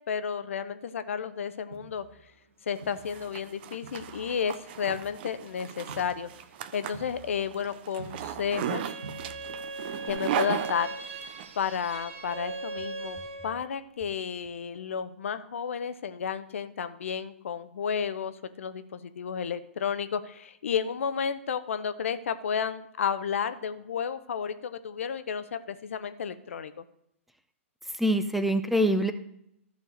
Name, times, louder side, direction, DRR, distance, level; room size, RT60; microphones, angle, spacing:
voice 1, 0.1-2.0 2.7-6.3 6.7-8.9 10.1-10.9 11.6-13.2 13.4-26.8, left 7 dB, 65° left, 12 dB, 0.8 m, -32 dB
Crowd, 1.7-3.5 3.8-8.7 9.0-9.7 10.1-10.2, right 4 dB, 85° right, 1.8 m, -49 dB
Zipper (clothing), 2.8-11.5, right 10 dB, 45° right, 0.7 m, -36 dB
Bowed string instrument, 8.5-13.7, right 3 dB, 65° right, 1.9 m, -39 dB
voice 2, 27.9-29.1, equal, ahead, 9 dB, 0.6 m, -25 dB
12.5 x 4.6 x 6.5 m, 0.77 s
hypercardioid pair, 120°, 7 cm